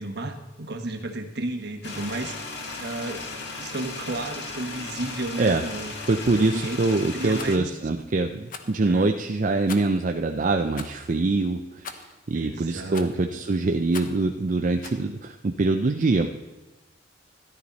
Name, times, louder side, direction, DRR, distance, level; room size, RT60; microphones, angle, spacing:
voice 1, 0.0-2.4 2.8-3.2 3.6-5.9 6.3-6.8 7.1-7.7 8.7-9.1 12.3-13.1, right 2 dB, 60° right, 5 dB, 1.3 m, -33 dB
sound 1, 1.8-7.6, left 3 dB, 65° left, 1.7 m, -36 dB
voice 2, 6.1-16.3, right 3 dB, 45° right, 5 dB, 0.5 m, -24 dB
Rattle, 7.3-7.6 8.5-8.8 9.7-10.0 10.7-11.0 11.8-12.2 12.9-13.3 13.9-14.2 14.8-15.0, left 6 dB, 50° left, 0.9 m, -40 dB
13.5 x 11.0 x 4.1 m, 1.1 s
head